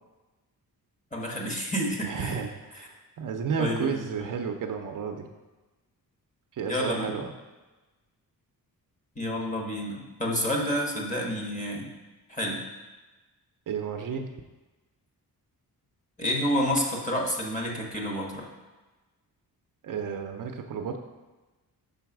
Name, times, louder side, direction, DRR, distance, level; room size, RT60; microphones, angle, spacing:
voice 1, 1.1-2.4 3.6-4.1 6.7-7.2 9.1-11.9 12.3-12.7 16.2-18.5, equal, 20° left, 0 dB, 1.2 m, -29 dB
voice 2, 2.0-5.3 6.5-7.3 13.7-14.3 19.8-21.0, right 6 dB, 55° right, 4 dB, 0.6 m, -32 dB
5.6 x 4.0 x 5.9 m, 1.2 s
wide cardioid pair, 140°, 37 cm